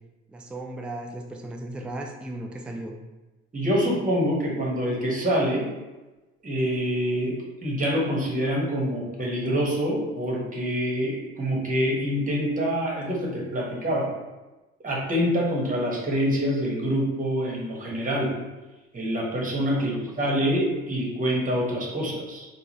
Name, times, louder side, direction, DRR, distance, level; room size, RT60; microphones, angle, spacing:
voice 1, 0.3-3.0 19.7-20.4, right 1 dB, 5° right, 2 dB, 0.4 m, -37 dB
voice 2, 3.5-5.7 6.4-14.1 14.8-18.3 18.9-22.5, equal, 25° right, -3 dB, 1.4 m, -26 dB
3.6 x 2.4 x 3.1 m, 1.1 s
hypercardioid pair, 55°, 35 cm